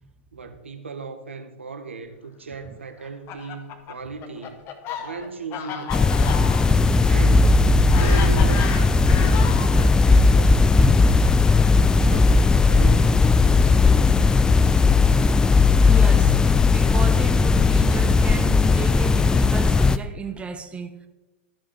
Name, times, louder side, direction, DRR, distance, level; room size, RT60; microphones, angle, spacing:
voice 1, 0.3-4.6 5.0-6.5 7.0-7.5 7.9-11.3 12.1-14.8, right 4 dB, 85° right, 0.8 m, -37 dB
Fowl, 3.0-9.9 10.7-12.8, left 7 dB, 40° left, 1.0 m, -34 dB
sound 1, 5.9-20.0, left 4 dB, 10° left, 0.3 m, -17 dB
voice 2, 15.9-16.4 16.7-21.1, right 4 dB, 15° right, 0.8 m, -34 dB
12.5 x 4.8 x 4.4 m
hypercardioid pair, 100°, 6 cm